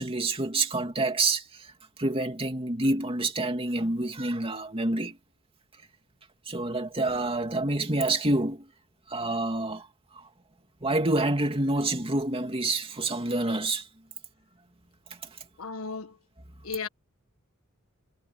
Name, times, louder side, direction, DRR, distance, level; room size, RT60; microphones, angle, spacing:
voice 1, 0.0-1.7 2.0-5.2 6.5-8.7 9.1-9.9 10.1-10.3 10.8-13.9, right 2 dB, 25° right, 2.8 m, -27 dB
voice 2, 15.6-16.2 16.6-16.9, left 5 dB, 85° left, 1.6 m, -35 dB
head